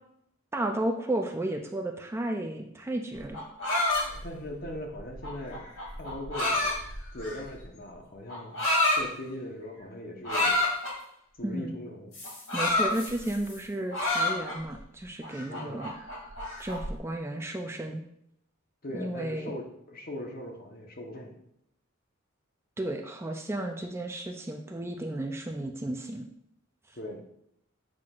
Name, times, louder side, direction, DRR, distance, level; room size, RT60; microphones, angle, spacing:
voice 1, 0.5-3.4 11.4-11.8 12.5-15.9 16.6-18.0 18.9-19.5 22.8-26.3 26.9-27.0, right 1 dB, 15° right, 3 dB, 0.4 m, -33 dB
sound 1, 3.2-7.6 8.3-9.0 10.2-10.9 12.1-13.6 13.9-14.8 15.2-16.9, left 2 dB, 75° left, 2.5 m, -28 dB
voice 2, 3.7-5.7 6.0-6.8 7.1-8.6 9.0-10.6 11.4-12.1 15.5-15.8 18.8-21.4 26.9-27.2, left 1 dB, 45° left, 1 dB, 1.1 m, -40 dB
7.6 x 5.9 x 2.5 m, 0.74 s
head